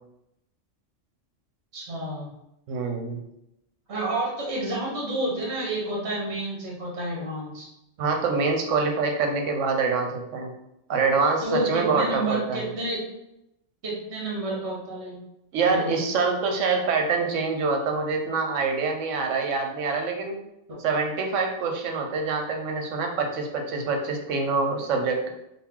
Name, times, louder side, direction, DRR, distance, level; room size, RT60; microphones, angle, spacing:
voice 1, 1.7-2.3 3.9-7.7 11.4-13.0 13.8-15.2 15.7-16.0 20.7-20.8, right 1 dB, 65° right, -4 dB, 1.3 m, -30 dB
voice 2, 2.7-3.2 8.0-10.5 10.9-12.7 15.5-20.4 20.8-25.3, right 4 dB, 85° right, 3 dB, 1.0 m, -25 dB
4.2 x 2.0 x 3.6 m, 0.84 s
omnidirectional pair, 1.2 m